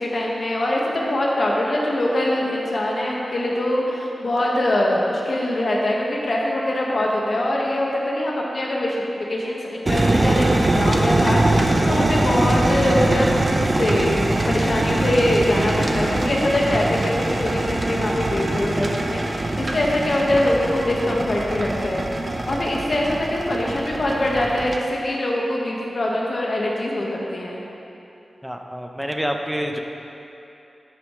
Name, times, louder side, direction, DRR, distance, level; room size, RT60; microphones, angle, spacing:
voice 1, 0.0-13.3 13.6-22.0 22.5-27.6, left 1 dB, 60° left, -3 dB, 1.5 m, -23 dB
sound 1, 9.9-24.8, right 2 dB, 40° right, 0.8 m, -22 dB
voice 2, 28.4-29.8, equal, 5° right, 3 dB, 0.8 m, -27 dB
11.5 x 8.6 x 3.2 m, 2.9 s
wide cardioid pair, 70°, 0 cm